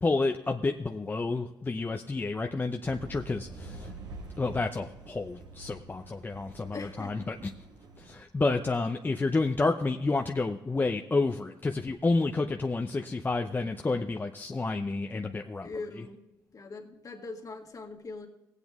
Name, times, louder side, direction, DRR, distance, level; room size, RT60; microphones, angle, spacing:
voice 1, 0.0-3.9 4.4-7.5 8.0-15.7, left 3 dB, 25° left, 4 dB, 0.6 m, -30 dB
sound 1, 2.9-8.2, right 3 dB, 80° right, 1.6 m, -46 dB
voice 2, 6.7-7.3 15.6-16.2 16.5-18.3, left 3 dB, 50° left, 1 dB, 1.9 m, -41 dB
17.0 x 8.2 x 3.6 m, 1.0 s
cardioid pair, 65°, 8 cm